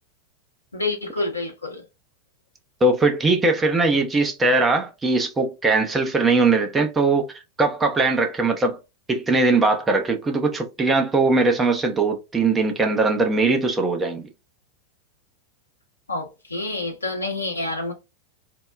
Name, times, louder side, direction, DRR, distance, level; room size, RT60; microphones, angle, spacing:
voice 1, 0.7-1.8 16.1-17.9, left 2 dB, 80° left, 0.7 m, -28 dB
voice 2, 2.8-7.3 7.6-8.8 9.1-14.3, right 3 dB, 15° right, 0.6 m, -20 dB
3.5 x 2.1 x 2.4 m
figure-of-eight pair, 90°, 0 cm